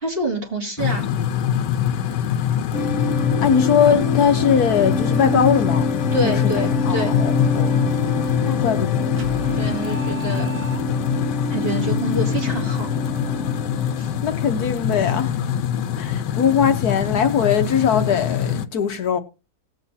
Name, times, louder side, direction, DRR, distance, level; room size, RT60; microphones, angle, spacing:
voice 1, 0.0-1.0 6.1-7.1 9.5-10.5 11.5-12.9 14.0-14.1, right 1 dB, 35° right, 2.6 m, -26 dB
sound 1, 0.8-18.7, left 9 dB, 85° left, 1.3 m, -24 dB
sound 2, 2.7-14.6, left 3 dB, 45° left, 1.4 m, -25 dB
voice 2, 3.4-5.9 6.2-7.8 8.4-9.2 14.2-15.5 16.0-19.2, left 7 dB, 65° left, 1.3 m, -21 dB
sound 3, 9.2-11.3, left 2 dB, 50° right, 2.0 m, -35 dB
18.5 x 7.7 x 2.7 m
omnidirectional pair, 1.8 m